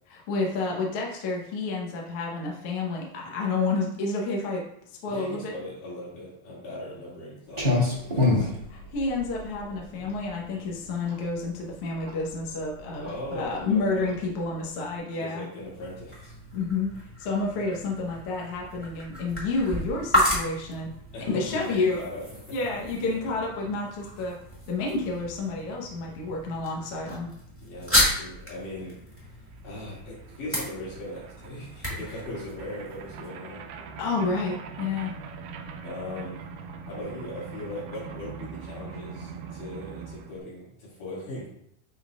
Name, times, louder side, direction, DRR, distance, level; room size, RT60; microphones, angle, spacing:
voice 1, 0.1-4.6 5.0-5.5 8.7-15.5 16.5-16.9 17.2-20.9 21.2-22.0 22.5-24.4 24.7-27.3 34.0-35.1, left 3 dB, 60° left, -2 dB, 1.8 m, -29 dB
voice 2, 5.1-8.6 13.0-14.2 15.1-16.4 21.1-22.6 23.0-23.4 27.6-29.0 29.3-29.4 29.6-34.0 35.8-36.4 36.8-41.5, left 1 dB, 80° left, -7 dB, 4.2 m, -39 dB
Clock, 7.5-15.0, left 3 dB, 50° right, 0.4 m, -29 dB
sound 1, 15.5-33.3, equal, 5° left, 1.1 m, -33 dB
sound 2, 29.3-29.4 29.5-40.4, right 6 dB, 85° right, 2.2 m, -42 dB
10.5 x 3.9 x 2.5 m, 0.71 s
omnidirectional pair, 3.7 m